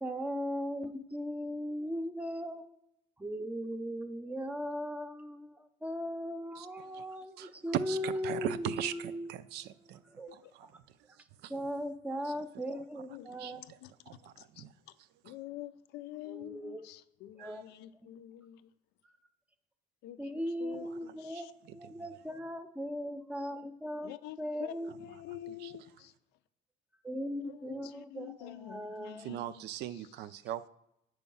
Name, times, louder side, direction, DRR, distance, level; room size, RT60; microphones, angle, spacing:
voice 1, 0.0-2.7 3.2-9.3 10.2-10.3 11.5-13.6 16.3-16.8 17.4-17.6 20.2-24.9 27.0-29.3, equal, 10° right, 0.6 m, -38 dB
voice 2, 7.4-10.0 10.3-10.7 11.4-11.5 12.3-12.4 13.4-13.5 14.1-14.7 17.4-17.6 21.3-21.9 25.6-25.7 29.2-30.7, right 12 dB, 75° right, 0.4 m, -39 dB
voice 3, 13.1-14.9 15.2-18.7 20.0-20.2 20.6-21.5 24.0-26.1 27.4-30.1, left 14 dB, 90° left, 0.5 m, -48 dB
7.2 x 4.6 x 5.4 m
cardioid pair, 110°, 17 cm